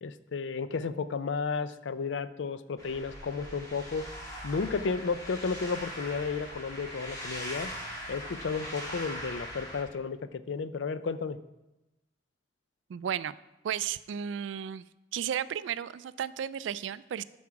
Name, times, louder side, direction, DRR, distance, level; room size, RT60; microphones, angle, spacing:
voice 1, 0.0-4.1 4.4-7.7 8.1-11.4, left 5 dB, 80° left, 14 dB, 0.4 m, -33 dB
sound 1, 2.8-9.8, equal, 20° left, 2.3 m, -41 dB
voice 2, 12.9-13.4 13.6-14.8 15.1-17.2, right 9 dB, 85° right, 17 dB, 0.3 m, -33 dB
9.5 x 6.2 x 4.7 m, 0.97 s
head